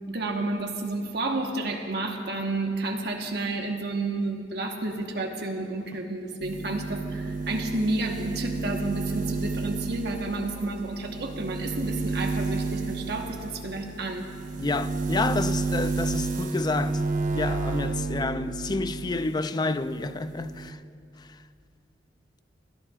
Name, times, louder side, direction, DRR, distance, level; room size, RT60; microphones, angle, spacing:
voice 1, 0.1-14.3, right 2 dB, 60° right, 1.2 m, -31 dB
sound 1, 6.4-19.4 19.7-20.7, right 3 dB, 45° right, 0.9 m, -31 dB
voice 2, 14.6-17.0 17.3-20.8, left 3 dB, 20° left, 0.4 m, -29 dB
21.0 x 14.5 x 2.4 m
head